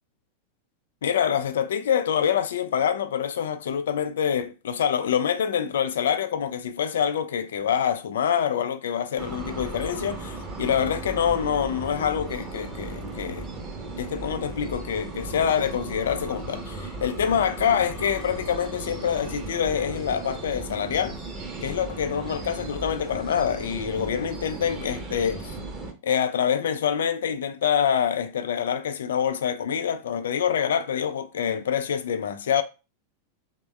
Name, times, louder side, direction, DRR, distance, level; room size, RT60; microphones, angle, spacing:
voice 1, 1.0-13.5 14.0-21.2 21.6-25.5 26.0-32.6, left 8 dB, 60° left, 0.3 m, -26 dB
sound 1, 9.2-25.9, right 2 dB, 25° right, 0.8 m, -36 dB
3.4 x 2.2 x 3.2 m
figure-of-eight pair, 90°, 0 cm